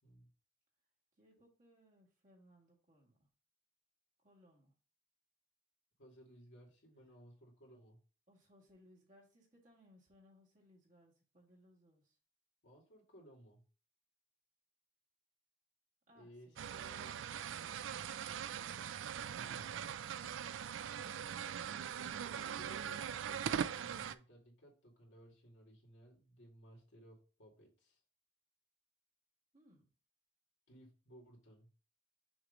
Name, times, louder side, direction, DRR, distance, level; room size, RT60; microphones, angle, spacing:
voice 1, 1.2-3.2 4.2-4.7 8.3-12.1 16.1-16.6 17.9-18.9 29.5-29.9, equal, 40° right, -3 dB, 2.0 m, -66 dB
voice 2, 6.0-8.0 12.6-13.6 16.1-17.3 19.1-20.0 22.3-28.0 30.7-31.7, equal, 75° left, -1 dB, 2.2 m, -60 dB
sound 1, 16.6-24.1, right 8 dB, 80° right, 0.3 m, -41 dB
6.3 x 3.0 x 5.0 m, 0.37 s
head